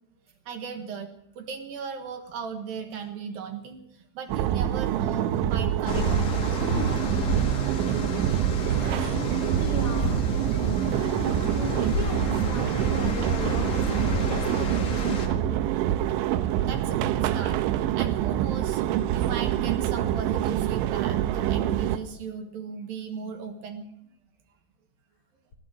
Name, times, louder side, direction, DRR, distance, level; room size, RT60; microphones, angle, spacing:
voice 1, 0.5-1.1 1.4-3.8 4.1-6.5 16.4-18.8 19.1-23.9, right 6 dB, 65° right, 6 dB, 2.8 m, -37 dB
sound 1, 4.3-22.0, right 11 dB, 85° right, 3.1 m, -26 dB
sound 2, 5.9-15.3, left 4 dB, 50° left, 2.2 m, -32 dB
voice 2, 9.3-10.2 11.2-15.6, left 4 dB, 80° left, 3 dB, 1.2 m, -38 dB
20.0 x 14.0 x 5.0 m, 0.73 s
omnidirectional pair, 5.3 m